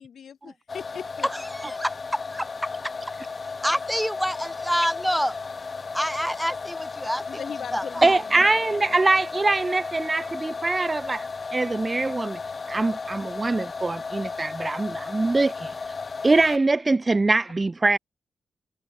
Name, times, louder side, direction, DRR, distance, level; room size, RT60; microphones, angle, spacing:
voice 1, 0.0-1.3 7.3-9.0, left 8 dB, 80° left, 2.4 m, -39 dB
sound 1, 0.7-16.6, left 4 dB, 45° left, 1.1 m, -34 dB
voice 2, 1.3-2.5 3.6-5.4 5.9-7.4 7.7-8.2, equal, ahead, 6.6 m, -27 dB
voice 3, 8.0-12.4 12.7-15.7 16.2-18.0, right 3 dB, 30° right, 0.7 m, -23 dB
cardioid pair, 65°, 0 cm